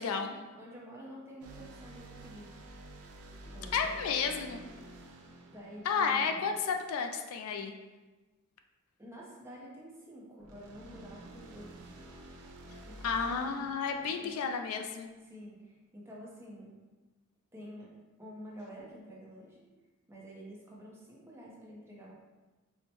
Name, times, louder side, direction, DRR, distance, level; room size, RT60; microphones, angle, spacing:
voice 1, 0.0-2.6 3.5-4.0 4.2-4.6 5.5-6.6 9.0-11.9 12.9-13.4 14.2-14.3 15.2-16.7 17.5-17.9 18.2-19.6 20.1-22.1, equal, 10° right, -5 dB, 0.7 m, -49 dB
sound 1, 1.4-6.9 10.4-15.1, right 1 dB, 80° right, 0.5 m, -50 dB
voice 2, 3.7-4.6 5.9-7.7 13.0-15.1, left 6 dB, 75° left, 5 dB, 0.3 m, -32 dB
4.5 x 2.1 x 2.9 m, 1.2 s
head